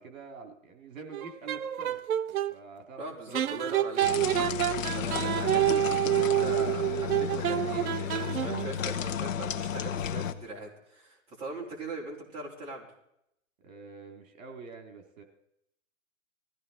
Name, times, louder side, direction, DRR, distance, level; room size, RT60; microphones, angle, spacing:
voice 1, 0.0-2.0 2.5-3.7 4.0-4.1 13.6-15.2, right 5 dB, 65° right, 4 dB, 2.8 m, -46 dB
sound 1, 1.1-2.5 3.3-8.8, right 11 dB, 85° right, 0.8 m, -28 dB
voice 2, 3.0-4.1 4.9-12.9, right 2 dB, 15° right, -5 dB, 3.8 m, -40 dB
sound 2, 4.0-10.3, left 8 dB, 65° left, 1.4 m, -33 dB
20.5 x 15.5 x 4.0 m, 0.78 s
hypercardioid pair, 170°, 42 cm